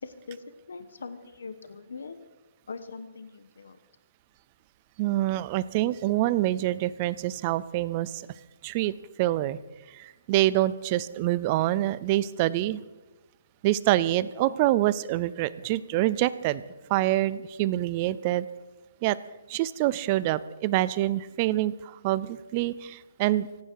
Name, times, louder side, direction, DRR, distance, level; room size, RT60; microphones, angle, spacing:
voice 1, 0.0-2.2 2.7-3.8, left 4 dB, 85° left, 11 dB, 1.3 m, -41 dB
voice 2, 5.0-8.2 8.6-8.9 9.2-9.6 9.9-12.8 13.6-16.6 16.9-18.5 19.0-19.2 19.5-23.5, right 15 dB, 20° right, 18 dB, 0.4 m, -26 dB
25.0 x 9.5 x 4.7 m, 1.1 s
hypercardioid pair, 175°, 0 cm